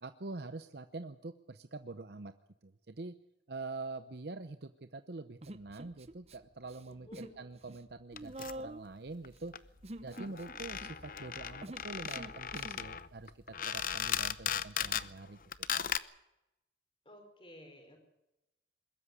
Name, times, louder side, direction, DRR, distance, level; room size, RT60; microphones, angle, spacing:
voice 1, 0.0-2.3 2.6-3.2 3.5-9.5 10.0-15.4 15.7-15.9, right 3 dB, 65° right, 10 dB, 0.8 m, -45 dB
Human voice, 5.4-6.4 6.6-7.4 7.7-12.9, right 1 dB, 35° right, 0.8 m, -47 dB
voice 2, 6.8-7.4 17.0-18.0, left 1 dB, 30° left, 4 dB, 4.9 m, -54 dB
sound 1, 8.2-8.6 9.2-9.3 9.5-9.6 9.8-9.9 10.1-15.1 15.5-16.0, left 9 dB, 50° left, 0.7 m, -37 dB
21.5 x 13.0 x 9.9 m, 0.92 s
head